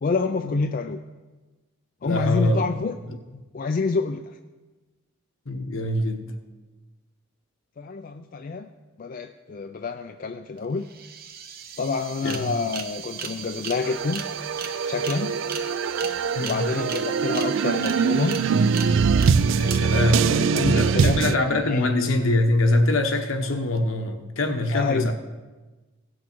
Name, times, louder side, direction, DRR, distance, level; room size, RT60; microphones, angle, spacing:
voice 1, 0.0-1.0 2.0-2.9 3.5-4.4 7.8-8.7 9.0-10.8 11.8-14.2 14.8-15.4 16.4-18.4 20.2-21.8 24.7-25.1, left 4 dB, 40° left, 7 dB, 0.3 m, -28 dB
voice 2, 2.0-2.6 3.1-3.2 5.5-6.4 12.2-12.5 16.3-16.6 19.5-25.1, left 2 dB, 70° left, 6 dB, 1.1 m, -24 dB
sound 1, 10.6-10.7 10.8-21.7, right 7 dB, 45° right, 0.9 m, -37 dB
sound 2, 13.8-21.4, right 5 dB, 60° right, 0.3 m, -23 dB
17.0 x 6.3 x 4.4 m, 1.2 s
head